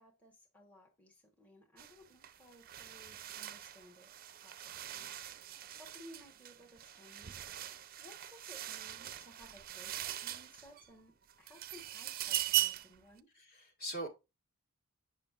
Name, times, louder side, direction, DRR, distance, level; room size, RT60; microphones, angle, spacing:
voice 1, 0.0-7.4 8.0-13.3, equal, 5° left, 1.1 m, -59 dB
sound 1, 1.8-2.0 2.2-10.9 11.3-13.0, right 13 dB, 40° right, 0.5 m, -40 dB
voice 2, 13.3-14.1, right 1 dB, 45° left, 1.7 m, -42 dB
8.7 x 5.5 x 2.4 m
head